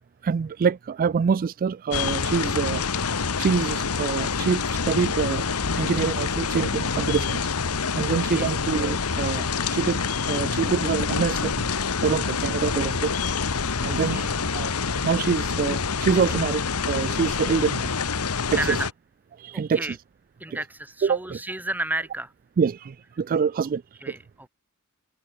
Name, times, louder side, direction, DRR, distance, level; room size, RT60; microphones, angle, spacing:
voice 1, 0.2-2.8 3.4-5.5 5.8-7.5 7.9-11.7 12.0-13.1 13.8-14.2 14.5-14.7 15.0-17.9 18.5-18.8 19.4-20.0 21.0-21.4 22.6-23.8 24.1-24.2, right 6 dB, 40° right, 0.3 m, -25 dB
sound 1, 1.9-18.9, left 5 dB, 85° left, 1.3 m, -26 dB
voice 2, 8.0-8.6 13.8-14.4 18.6-18.9 19.5-20.0 20.4-22.3 24.0-24.5, right 2 dB, 10° right, 1.7 m, -32 dB
open air
head